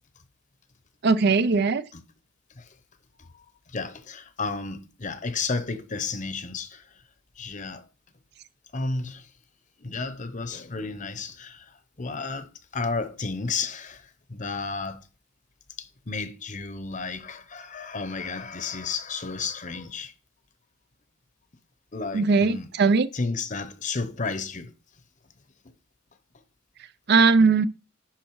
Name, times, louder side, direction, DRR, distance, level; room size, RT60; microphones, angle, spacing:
voice 1, 1.0-1.8 22.1-23.1 27.1-27.7, right 4 dB, 50° right, 0.5 m, -19 dB
voice 2, 3.2-7.0 7.4-7.8 8.7-9.3 9.8-15.1 15.8-20.1 21.9-22.7 23.1-24.7, left 4 dB, 40° left, 0.9 m, -33 dB
10.5 x 4.7 x 4.7 m
head